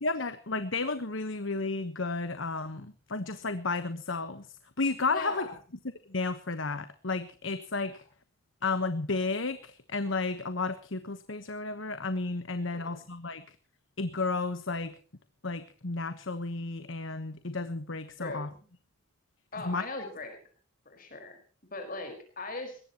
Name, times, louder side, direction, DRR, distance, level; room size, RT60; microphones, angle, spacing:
voice 1, 0.0-4.5 4.8-5.5 6.1-8.0 8.6-13.4 14.0-14.9 15.4-18.5 19.6-19.8, left 3 dB, 65° left, 11 dB, 1.2 m, -32 dB
voice 2, 5.1-5.5 12.7-13.1 18.2-18.7 19.5-20.4 20.8-21.4 21.7-22.8, left 2 dB, 40° left, 6 dB, 4.9 m, -39 dB
21.5 x 18.5 x 3.0 m, 0.40 s
head